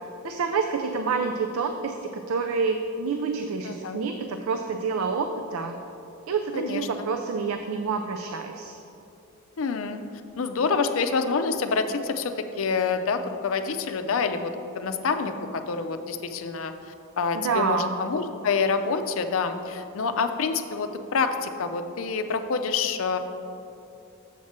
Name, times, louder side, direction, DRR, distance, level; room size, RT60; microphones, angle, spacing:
voice 1, 0.2-5.8 6.3-8.8 17.3-17.9, right 5 dB, 80° right, 5 dB, 0.4 m, -28 dB
voice 2, 3.6-4.0 6.5-7.1 9.6-10.0 10.4-16.7 17.2-23.2, left 5 dB, 70° left, 8 dB, 0.5 m, -27 dB
7.4 x 5.9 x 4.3 m, 2.7 s
head